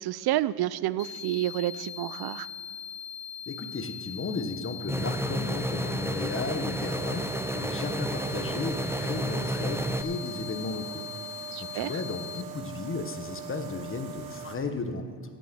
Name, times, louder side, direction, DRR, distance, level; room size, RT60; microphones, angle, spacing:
voice 1, 0.0-2.5 11.5-12.0, right 14 dB, 55° right, 17 dB, 0.6 m, -29 dB
sound 1, 1.0-12.4, left 9 dB, 50° left, 0.6 m, -41 dB
voice 2, 3.5-11.0 11.6-15.1, left 3 dB, 25° left, 7 dB, 1.2 m, -34 dB
sound 2, 4.9-10.0, right 1 dB, 5° right, 0.5 m, -31 dB
sound 3, 6.8-14.6, right 7 dB, 75° right, 1.6 m, -42 dB
16.0 x 6.3 x 7.7 m, 2.2 s
cardioid pair, 105°, 47 cm